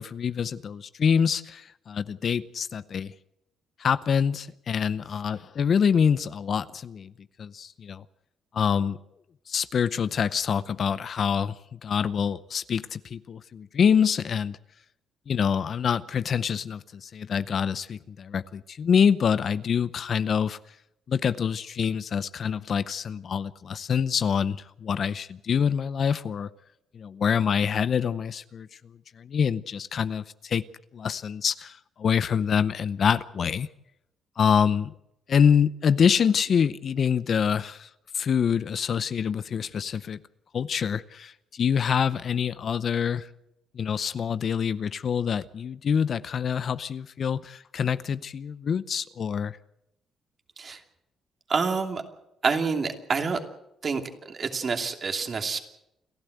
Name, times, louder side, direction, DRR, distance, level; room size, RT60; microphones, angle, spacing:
voice 1, 0.0-3.1 3.8-7.1 7.4-8.0 8.5-9.0 9.5-14.6 15.3-20.6 21.1-26.5 26.9-28.7 29.2-30.6 30.9-33.7 34.4-34.9 35.3-37.9 38.1-40.2 40.5-43.3 43.7-49.6, left 7 dB, 55° left, 15 dB, 0.7 m, -26 dB
voice 2, 51.5-52.0 52.4-53.4 53.8-54.0 54.3-55.6, right 5 dB, 45° right, 5 dB, 2.8 m, -27 dB
29.5 x 11.5 x 8.0 m, 0.84 s
cardioid pair, 90°, 0 cm